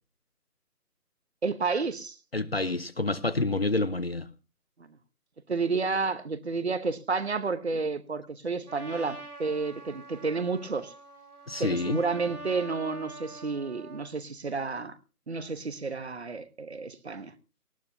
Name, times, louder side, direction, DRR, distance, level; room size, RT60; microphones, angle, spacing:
voice 1, 1.4-2.2 2.5-2.6 5.5-10.9 11.6-15.0 15.3-17.3, right 4 dB, 45° right, 1.1 m, -31 dB
voice 2, 2.3-4.3 11.5-12.0, left 2 dB, 40° left, 0.7 m, -28 dB
Trumpet, 8.7-14.1, right 2 dB, 70° right, 4.3 m, -45 dB
19.0 x 14.5 x 2.8 m
figure-of-eight pair, 160°, 46 cm